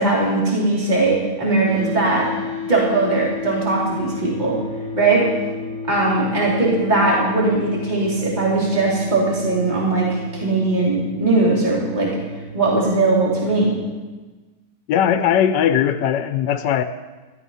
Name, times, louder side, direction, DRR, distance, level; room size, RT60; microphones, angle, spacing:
voice 1, 0.0-2.3 2.7-4.6 5.0-5.3 5.9-12.2 12.5-13.7, right 2 dB, 25° right, -5 dB, 3.4 m, -19 dB
sound 1, 1.7-13.8, left 3 dB, 15° left, 3.5 m, -33 dB
voice 2, 14.9-16.8, left 9 dB, 80° left, 10 dB, 1.2 m, -19 dB
13.5 x 13.0 x 5.5 m, 1.3 s
omnidirectional pair, 1.8 m